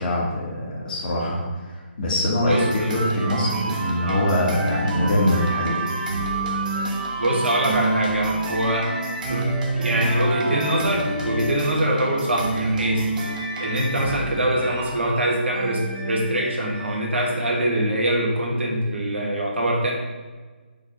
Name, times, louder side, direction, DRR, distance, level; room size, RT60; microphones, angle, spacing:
voice 1, 0.0-5.8, left 1 dB, 45° left, -4 dB, 1.6 m, -23 dB
voice 2, 2.4-2.9 4.0-4.2 7.2-8.9 9.3-13.0 13.6-19.9, right 1 dB, 85° right, -1 dB, 1.7 m, -23 dB
sound 1, 2.5-17.6, right 2 dB, 45° right, 1.2 m, -28 dB
5.3 x 4.1 x 5.1 m, 1.4 s
figure-of-eight pair, 145°, 6 cm